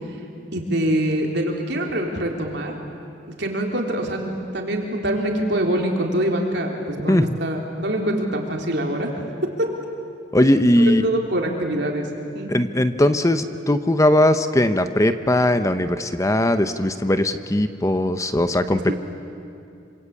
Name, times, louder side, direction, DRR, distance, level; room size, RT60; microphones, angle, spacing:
voice 1, 0.5-2.7 3.4-9.1 9.6-9.7 10.8-12.1 12.3-12.5 18.7-18.9, right 1 dB, 65° right, 1 dB, 3.7 m, -24 dB
voice 2, 10.3-11.0 12.5-18.9, left 1 dB, 15° left, 10 dB, 0.8 m, -19 dB
27.0 x 26.0 x 8.4 m, 2.6 s
head